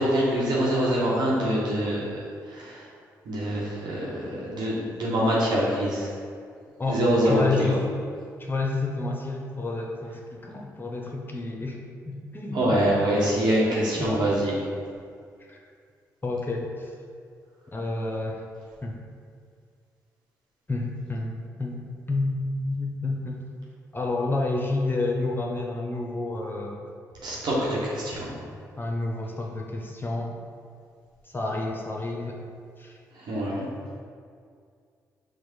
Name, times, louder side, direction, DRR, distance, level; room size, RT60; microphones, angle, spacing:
voice 1, 0.0-2.2 2.5-2.8 3.3-6.1 6.9-7.4 12.5-14.5 27.2-28.3 33.3-33.7, right 1 dB, 65° right, -6 dB, 1.1 m, -24 dB
voice 2, 6.8-7.8 8.4-11.8 12.0-12.8 13.6-14.1 15.5-15.6 16.2-16.9 17.7-18.4 18.8-18.9 20.7-21.8 22.1-23.4 23.9-26.8 28.8-30.3 31.3-32.4 32.8-32.9, left 2 dB, 25° left, -1 dB, 0.9 m, -29 dB
4.7 x 2.3 x 4.6 m, 2.2 s
hypercardioid pair, 45°, 8 cm